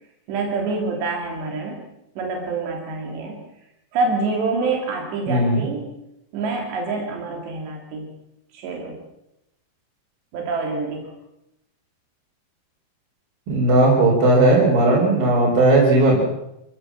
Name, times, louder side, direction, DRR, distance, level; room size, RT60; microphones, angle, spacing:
voice 1, 0.3-1.8 2.2-3.4 3.9-5.9 6.3-8.1 8.5-9.0 10.3-11.1, right 3 dB, 85° right, 1 dB, 5.1 m, -26 dB
voice 2, 5.3-5.6 13.5-16.2, right 2 dB, 60° right, -5 dB, 6.2 m, -16 dB
27.0 x 16.0 x 7.5 m, 0.86 s
omnidirectional pair, 4.8 m